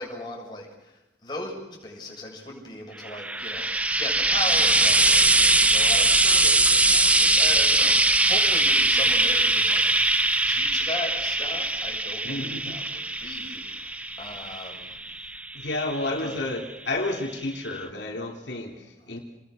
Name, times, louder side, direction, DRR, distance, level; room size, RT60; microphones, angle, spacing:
voice 1, 0.0-9.9 10.5-15.0 16.2-16.4, left 2 dB, 25° left, -2 dB, 6.7 m, -38 dB
Frying (food), 3.0-16.5 17.4-17.5, right 2 dB, 10° right, 0.8 m, -22 dB
voice 2, 12.2-12.8 15.5-19.2, left 2 dB, 85° left, 1 dB, 3.3 m, -31 dB
30.0 x 20.5 x 6.5 m, 1.0 s
head